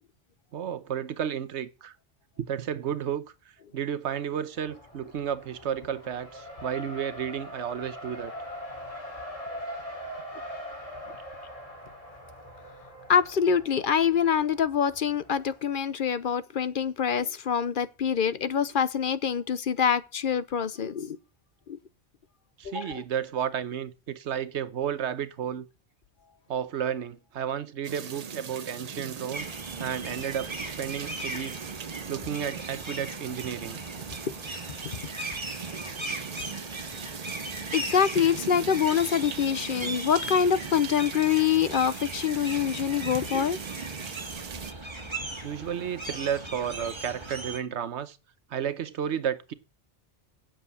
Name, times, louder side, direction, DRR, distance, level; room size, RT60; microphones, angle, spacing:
voice 1, 0.5-1.9 2.4-3.3 3.7-8.3 22.6-25.7 26.5-29.5 29.8-31.5 32.1-33.8 45.4-48.2 48.5-49.5, right 8 dB, 75° right, 1.1 m, -32 dB
Race car auto racing, 4.6-15.6, equal, 30° left, 3.0 m, -42 dB
voice 2, 13.1-21.2 21.7-21.8 22.6-23.0 37.7-43.6, left 7 dB, 55° left, 0.8 m, -25 dB
sound 1, 27.8-44.7, right 6 dB, 45° right, 0.6 m, -40 dB
sound 2, 29.3-47.6, right 2 dB, 25° right, 1.7 m, -38 dB
7.8 x 7.3 x 8.2 m
omnidirectional pair, 1.2 m